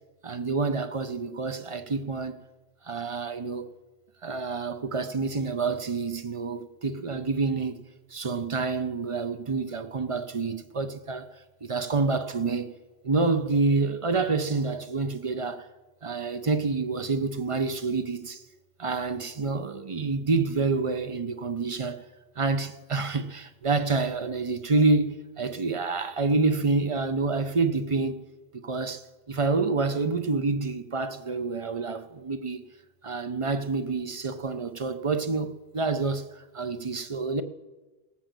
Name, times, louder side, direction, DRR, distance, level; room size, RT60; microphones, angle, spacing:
voice 1, 0.2-2.3 2.8-3.7 4.2-7.7 8.1-12.7 13.0-15.7 16.0-18.4 18.8-22.0 22.4-28.2 28.6-32.6 33.0-37.4, right 3 dB, 35° right, 0.6 m, -28 dB
17.5 x 7.3 x 7.5 m
omnidirectional pair, 1.1 m